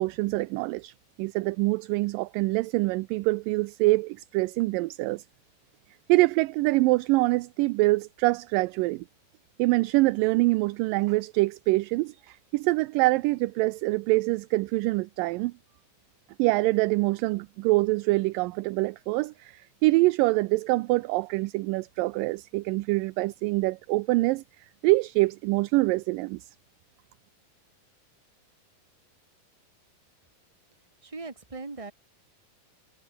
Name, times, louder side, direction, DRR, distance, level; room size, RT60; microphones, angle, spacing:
voice 1, 0.0-5.2 6.1-9.1 9.6-15.5 16.4-24.4 24.8-26.5, right 21 dB, 80° right, 2.1 m, -25 dB
voice 2, 31.0-31.9, right 3 dB, 15° right, 1.4 m, -39 dB
omnidirectional pair, 4.2 m